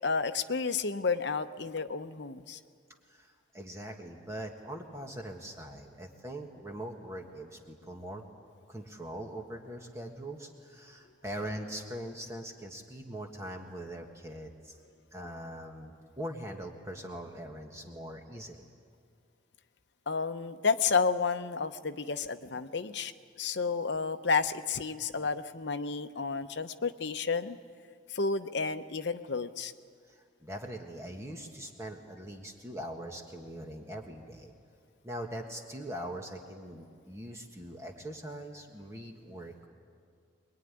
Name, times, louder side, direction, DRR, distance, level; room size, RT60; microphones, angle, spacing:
voice 1, 0.0-2.6 20.1-23.1 23.4-27.6 28.1-29.7, left 5 dB, 60° left, 9 dB, 0.8 m, -31 dB
voice 2, 3.1-8.2 8.7-14.8 15.1-18.7 30.1-34.5 35.0-39.7, right 1 dB, 15° right, 2 dB, 1.6 m, -42 dB
23.0 x 21.5 x 9.9 m, 2.2 s
head